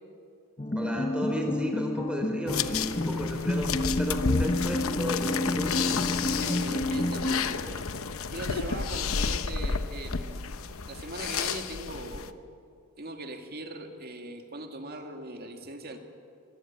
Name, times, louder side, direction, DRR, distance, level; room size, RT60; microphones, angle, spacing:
sound 1, 0.6-7.4, left 1 dB, 25° left, 0.8 m, -30 dB
voice 1, 0.7-5.8, left 1 dB, 5° right, 3 dB, 3.8 m, -33 dB
sound 2, 2.5-12.3, left 5 dB, 65° left, 0.9 m, -31 dB
voice 2, 5.8-10.4 10.9-12.4 13.0-16.0, right 1 dB, 45° right, 4 dB, 2.3 m, -40 dB
25.0 x 19.0 x 8.7 m, 2.4 s
head